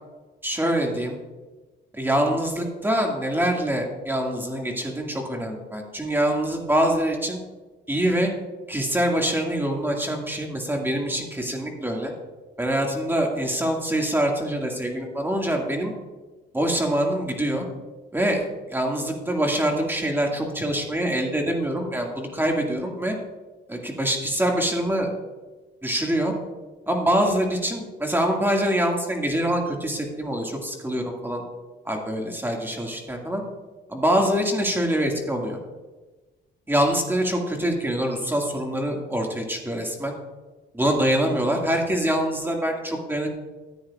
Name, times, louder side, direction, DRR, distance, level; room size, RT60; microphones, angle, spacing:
voice 1, 0.4-1.2 1.9-7.4 7.9-8.3 8.7-12.1 12.6-15.9 16.5-17.7 18.1-23.1 23.7-25.1 25.8-26.3 26.9-31.4 31.9-33.4 33.9-35.6 36.7-40.1 40.7-43.3, right 1 dB, 10° right, 1 dB, 2.2 m, -24 dB
14.0 x 9.3 x 2.5 m, 1.2 s
cardioid pair, 90°, 20 cm